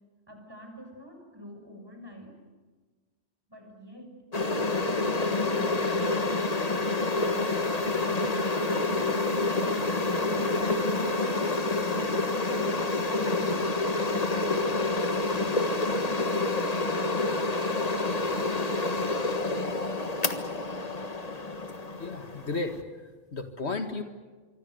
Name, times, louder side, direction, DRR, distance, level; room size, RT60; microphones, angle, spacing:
voice 1, 0.3-2.3 3.5-4.1 4.9-6.1 7.2-9.7 12.1-14.6 15.4-17.0, equal, 20° right, 3 dB, 6.4 m, -47 dB
sound 1, 4.3-22.8, left 2 dB, 35° left, 1.6 m, -28 dB
voice 2, 21.9-24.0, left 3 dB, 70° left, 7 dB, 2.0 m, -34 dB
26.0 x 24.0 x 7.9 m, 1.4 s
omnidirectional pair, 1.2 m